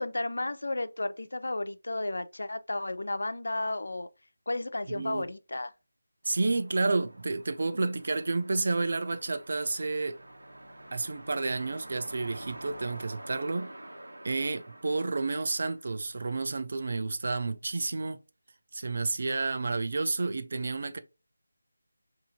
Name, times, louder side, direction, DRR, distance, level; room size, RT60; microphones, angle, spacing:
voice 1, 0.0-4.1 4.5-5.7, left 2 dB, 70° left, 0.4 m, -33 dB
voice 2, 4.9-5.3 6.2-10.2 10.9-13.7 14.2-18.2 18.7-21.0, right 3 dB, 50° right, 0.5 m, -30 dB
sound 1, 6.2-16.5, right 1 dB, 80° right, 1.0 m, -48 dB
2.8 x 2.7 x 4.1 m
figure-of-eight pair, 165°, 0 cm